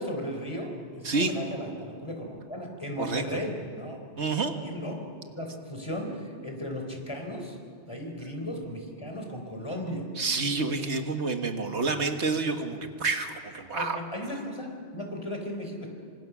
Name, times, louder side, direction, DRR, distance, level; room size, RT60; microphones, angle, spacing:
voice 1, 0.0-4.0 4.6-5.0 5.3-7.6 7.8-10.1 13.7-15.9, equal, 25° left, 2 dB, 4.0 m, -36 dB
voice 2, 3.0-3.4 4.2-4.5 10.2-14.0, right 3 dB, 80° right, 5 dB, 1.8 m, -28 dB
27.5 x 25.5 x 6.2 m, 2.3 s
omnidirectional pair, 1.1 m